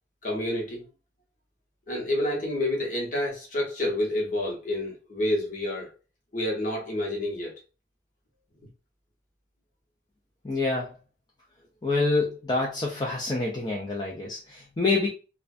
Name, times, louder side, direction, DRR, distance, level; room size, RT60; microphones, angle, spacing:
voice 1, 0.2-0.8 1.9-5.9 6.3-7.5, left 1 dB, 40° left, 0.9 m, -28 dB
voice 2, 10.4-10.9 11.8-15.1, left 3 dB, 20° left, 0.4 m, -27 dB
2.4 x 2.2 x 2.4 m
head